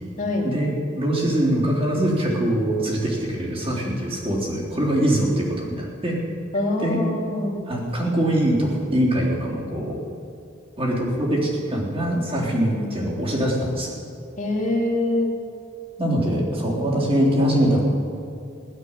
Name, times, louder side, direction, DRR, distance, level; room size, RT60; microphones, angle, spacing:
voice 1, 0.4-6.2 6.8-7.1 7.7-10.0 10.8-13.9 16.0-17.8, right 1 dB, 30° right, -4 dB, 3.6 m, -23 dB
voice 2, 6.5-7.6 14.4-15.3, left 2 dB, 40° left, -1 dB, 2.6 m, -24 dB
16.0 x 12.0 x 7.5 m, 2.5 s
head